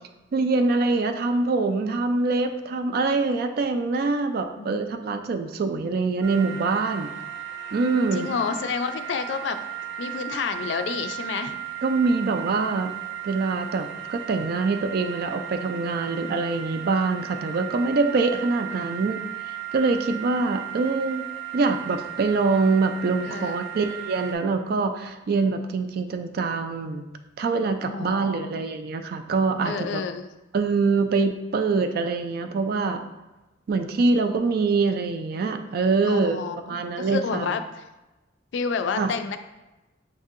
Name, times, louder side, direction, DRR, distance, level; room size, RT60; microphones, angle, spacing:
voice 1, 0.3-7.1 7.7-8.3 11.8-12.9 13.2-19.2 19.5-21.3 21.5-27.1 27.4-30.0 30.5-33.1 33.7-36.4 36.7-37.5 39.0-39.1, right 3 dB, 55° right, 7 dB, 0.3 m, -24 dB
voice 2, 4.6-5.0 8.1-9.6 10.0-11.6 18.7-19.0 23.2-23.6 27.9-28.5 29.6-30.3 36.0-37.8 38.5-39.4, left 5 dB, 70° left, 8 dB, 0.3 m, -30 dB
sound 1, 6.2-24.3, right 11 dB, 70° right, 1.0 m, -36 dB
6.3 x 2.7 x 2.4 m, 1.1 s
head